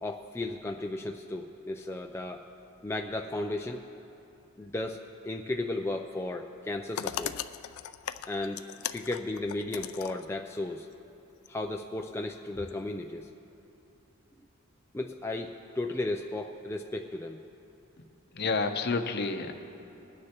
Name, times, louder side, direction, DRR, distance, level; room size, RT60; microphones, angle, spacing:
voice 1, 0.0-2.4 2.8-3.8 4.6-7.4 8.3-10.9 11.5-13.3 14.9-17.4, left 2 dB, 10° left, 2 dB, 0.3 m, -35 dB
sound 1, 6.9-10.3 11.4-11.5 12.7-12.8, left 10 dB, 85° left, 0.4 m, -38 dB
voice 2, 18.3-19.5, left 4 dB, 50° left, 6 dB, 0.7 m, -29 dB
21.0 x 9.6 x 2.9 m, 2.9 s
head